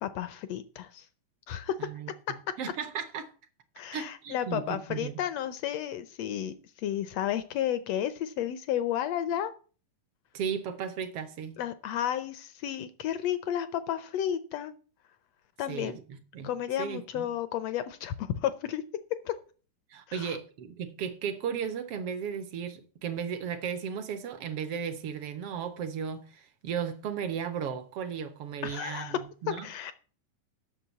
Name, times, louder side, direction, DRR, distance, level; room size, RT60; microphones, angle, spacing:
voice 1, 0.0-1.1 1.5-1.7 3.8-9.5 11.6-14.7 15.6-16.0 16.4-18.8 19.2-19.3 20.1-20.4 28.6-29.2 29.6-29.9, left 10 dB, 75° left, 1.6 m, -32 dB
voice 2, 1.8-3.3 3.9-4.6 4.9-5.2 10.3-11.6 15.7-16.5 16.8-17.3 19.9-29.7, right 7 dB, 65° right, 1.5 m, -35 dB
8.7 x 6.7 x 8.0 m
omnidirectional pair, 3.6 m